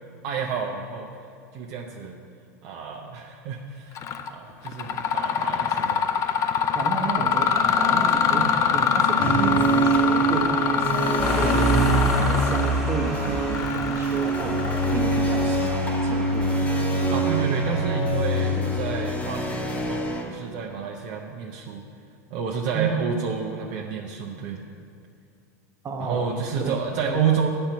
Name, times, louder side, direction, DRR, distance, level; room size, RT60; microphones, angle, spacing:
voice 1, 0.2-1.1 1.5-2.2 2.6-4.0 4.3-6.1 17.1-21.8 22.3-24.6 26.0-27.5, right 6 dB, 55° right, 0 dB, 0.7 m, -29 dB
Mechanisms, 4.0-4.3 4.7-15.2, left 7 dB, 40° left, 0.5 m, -24 dB
voice 2, 6.7-11.8 12.1-16.6 22.7-23.1 25.8-26.3 26.6-27.2, right 5 dB, 30° right, 0 dB, 1.2 m, -32 dB
sound 1, 9.2-20.2, right 2 dB, 15° left, 1.2 m, -25 dB
sound 2, 11.2-16.6, right 1 dB, 5° right, 1.3 m, -27 dB
8.7 x 4.4 x 7.1 m, 2.4 s
hypercardioid pair, 100°, 9 cm